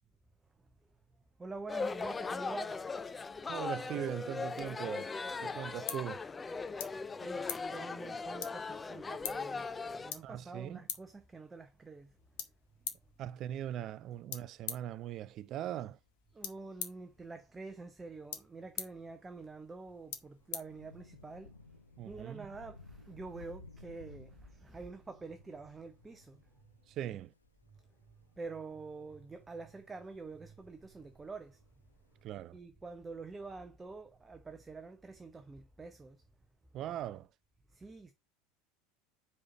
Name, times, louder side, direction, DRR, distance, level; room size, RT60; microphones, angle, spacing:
voice 1, 1.4-3.6 6.6-12.1 16.3-21.5 22.0-26.4 27.7-27.8 28.1-31.6 32.5-36.2 37.7-38.1, right 3 dB, 15° right, 0.7 m, -47 dB
sound 1, 1.7-10.1, left 4 dB, 20° left, 0.4 m, -39 dB
voice 2, 3.5-5.1 5.4-6.2 10.2-10.8 13.2-16.0 22.0-22.5 26.9-27.3 32.2-32.6 36.7-37.3, right 11 dB, 40° right, 0.4 m, -40 dB
sound 2, 5.1-21.4, left 9 dB, 60° left, 1.0 m, -47 dB
Thunder / Rain, 19.8-32.2, left 3 dB, 85° left, 0.5 m, -58 dB
5.0 x 4.1 x 5.8 m
figure-of-eight pair, 75°, 0 cm